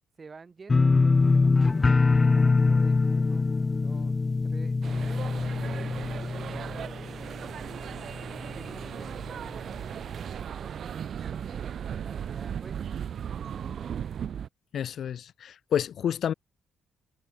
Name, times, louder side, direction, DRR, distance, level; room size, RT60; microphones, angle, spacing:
voice 1, 0.2-3.5 3.7-4.2 4.4-4.8 5.1-7.7 8.4-9.9 10.2-12.9 13.4-14.1, right 4 dB, 35° right, 7.3 m, -50 dB
sound 1, 0.7-7.6 7.9-8.4 8.8-8.9, left 3 dB, 25° left, 0.3 m, -23 dB
sound 2, 4.8-14.5, right 8 dB, 60° right, 1.3 m, -37 dB
voice 2, 14.7-16.3, left 9 dB, 60° left, 0.8 m, -29 dB
cardioid pair, 90°, 0 cm